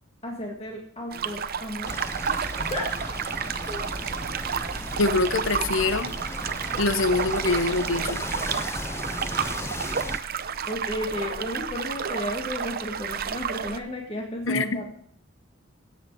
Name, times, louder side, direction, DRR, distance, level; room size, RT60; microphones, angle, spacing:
voice 1, 0.2-2.0 2.6-2.9 3.7-3.9 10.7-14.8, left 1 dB, 30° left, 0 dB, 1.7 m, -33 dB
sound 1, 1.1-13.8, right 7 dB, 50° right, 0.7 m, -31 dB
sound 2, 1.9-10.2, left 2 dB, 15° left, 0.4 m, -36 dB
voice 2, 5.0-6.1 6.8-8.2 14.5-14.8, left 3 dB, 90° left, 12 dB, 1.0 m, -24 dB
16.5 x 8.2 x 4.7 m, 0.63 s
head